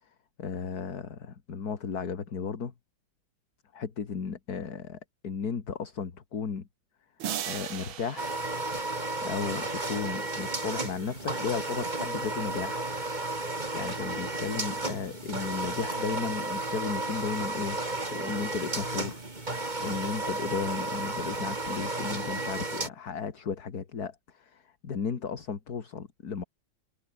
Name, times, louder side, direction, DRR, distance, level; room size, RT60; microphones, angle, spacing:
voice 1, 0.4-2.7 3.7-6.7 7.4-8.4 9.2-12.9 13.7-17.8 18.1-19.2 19.8-26.4, left 6 dB, 50° left, 2.4 m, -34 dB
sound 1, 7.2-9.7, right 10 dB, 80° right, 2.2 m, -38 dB
sound 2, 8.2-22.9, right 2 dB, 20° right, 3.1 m, -33 dB
omnidirectional pair, 2.2 m